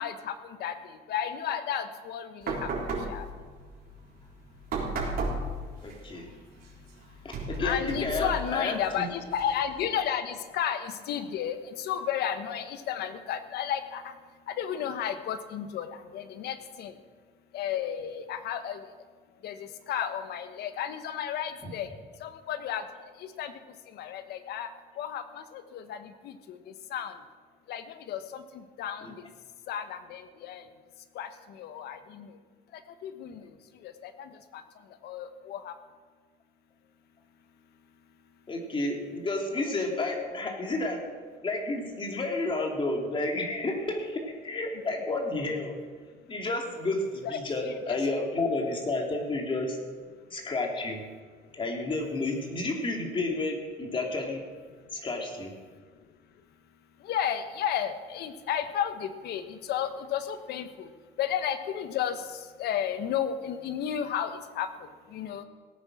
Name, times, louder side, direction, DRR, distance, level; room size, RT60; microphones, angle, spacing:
voice 1, 0.0-2.7 3.1-3.3 7.6-14.1 14.5-16.9 17.5-18.8 19.4-21.9 22.2-22.8 23.2-23.5 23.9-24.7 25.0-26.6 26.9-27.1 27.7-28.4 28.8-29.1 29.7-30.6 31.1-32.3 33.0-33.5 33.8-34.6 35.0-35.7 47.2-47.7 57.0-60.9 61.2-62.2 62.6-64.7 65.1-65.4, left 9 dB, 75° left, 10 dB, 1.2 m, -33 dB
sound 1, 2.4-9.9, right 2 dB, 60° right, 4.0 m, -36 dB
voice 2, 5.8-6.3 7.2-9.1 29.0-29.1 38.5-41.1 41.4-45.8 46.3-49.8 50.3-51.0 51.5-54.5 54.9-55.5, left 2 dB, 30° left, 1 dB, 3.0 m, -31 dB
17.5 x 9.3 x 6.3 m, 1.5 s
cardioid pair, 110°, 17 cm